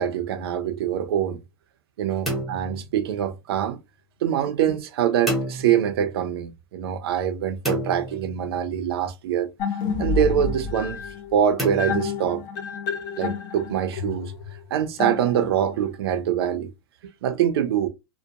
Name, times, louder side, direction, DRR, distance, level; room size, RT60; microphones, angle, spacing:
voice 1, 0.0-1.4 2.0-3.8 4.2-9.5 10.0-11.0 11.3-12.4 13.1-14.3 14.7-16.7 17.2-17.9, right 9 dB, 65° right, 0.5 m, -24 dB
sound 1, 2.3-3.6 5.3-6.3 7.6-8.9 11.6-12.8, equal, ahead, 0.7 m, -31 dB
sound 2, 9.6-15.8, left 6 dB, 30° left, 0.5 m, -30 dB
2.8 x 2.1 x 2.4 m
supercardioid pair, 155°, 14 cm